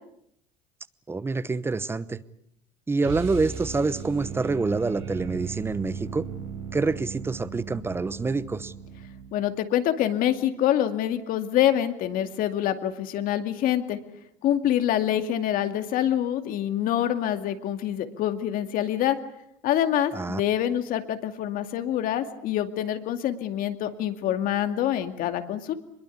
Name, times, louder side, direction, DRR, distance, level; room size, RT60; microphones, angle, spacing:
voice 1, 1.1-2.2 2.9-6.2 6.7-8.7 20.1-20.4, right 3 dB, 15° right, 17 dB, 1.0 m, -27 dB
sound 1, 3.0-9.4, right 7 dB, 90° right, 6.4 m, -37 dB
voice 2, 9.3-14.0 14.4-19.2 19.6-25.7, left 11 dB, 60° left, 8 dB, 2.3 m, -26 dB
24.0 x 22.0 x 8.5 m, 0.74 s
cardioid pair, 120°, 17 cm